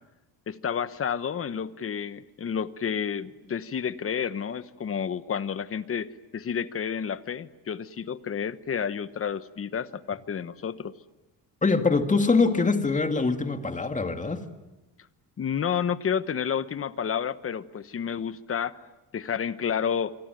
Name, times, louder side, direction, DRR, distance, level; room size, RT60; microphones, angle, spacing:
voice 1, 0.5-10.9 15.4-18.8 19.1-20.1, left 7 dB, 35° left, 14 dB, 1.1 m, -30 dB
voice 2, 11.6-14.5, left 4 dB, 20° left, 7 dB, 2.1 m, -23 dB
26.5 x 24.5 x 9.2 m, 1.0 s
cardioid pair, 130°, 40 cm